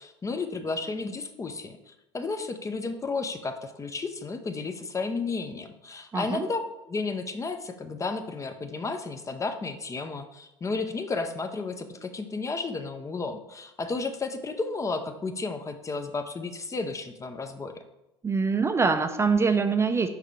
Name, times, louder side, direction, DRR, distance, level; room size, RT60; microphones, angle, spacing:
voice 1, 0.0-17.8, left 3 dB, 25° left, 8 dB, 0.6 m, -33 dB
voice 2, 6.1-6.4 18.2-20.1, right 4 dB, 20° right, 8 dB, 0.5 m, -24 dB
6.5 x 4.8 x 3.2 m, 0.94 s
hypercardioid pair, 70°, 13 cm